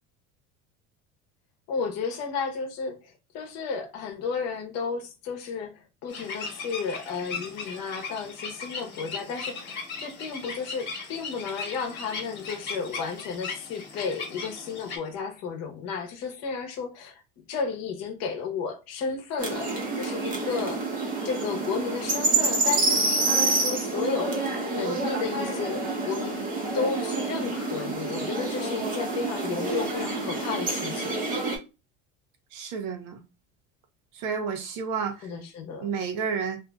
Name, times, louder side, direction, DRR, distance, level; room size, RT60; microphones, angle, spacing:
voice 1, 1.7-17.2 17.5-19.7 20.0-20.8 21.2-26.5 26.7-31.2 35.2-35.9, left 5 dB, 55° left, 0.9 m, -33 dB
sound 1, 6.1-15.0, left 4 dB, 35° left, 1.2 m, -38 dB
sound 2, 19.4-31.6, right 3 dB, 25° right, 0.8 m, -28 dB
voice 2, 32.5-33.2 34.1-35.3 35.8-36.6, right 6 dB, 70° right, 0.8 m, -31 dB
2.6 x 2.5 x 2.2 m
cardioid pair, 150°, 31 cm